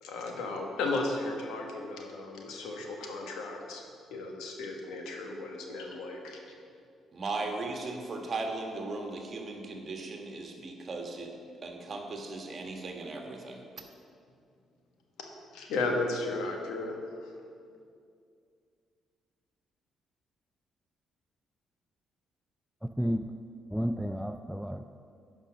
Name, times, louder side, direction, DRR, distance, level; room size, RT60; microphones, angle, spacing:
voice 1, 0.0-3.8 4.1-6.4 15.5-17.3, left 2 dB, 90° left, 1 dB, 1.3 m, -34 dB
voice 2, 7.1-11.3 11.6-13.6, right 3 dB, 45° right, 2 dB, 1.4 m, -37 dB
voice 3, 23.7-24.9, equal, ahead, 7 dB, 0.3 m, -31 dB
10.0 x 5.3 x 6.1 m, 2.4 s
cardioid pair, 90°, 0 cm